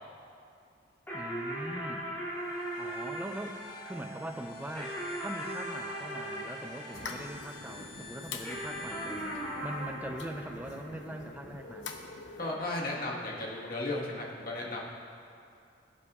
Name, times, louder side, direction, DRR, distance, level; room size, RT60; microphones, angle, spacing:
sound 1, 1.1-7.8 8.4-11.3, right 1 dB, 10° left, 2.4 m, -39 dB
voice 1, 1.1-2.1 2.8-11.9, right 1 dB, 10° right, 4 dB, 0.5 m, -42 dB
sound 2, 2.3-9.9, left 2 dB, 80° left, 2.6 m, -49 dB
sound 3, 6.9-12.6, left 4 dB, 65° left, 0.8 m, -45 dB
voice 2, 12.4-14.8, left 2 dB, 50° left, -3 dB, 1.4 m, -35 dB
17.5 x 8.2 x 2.4 m, 2.5 s
head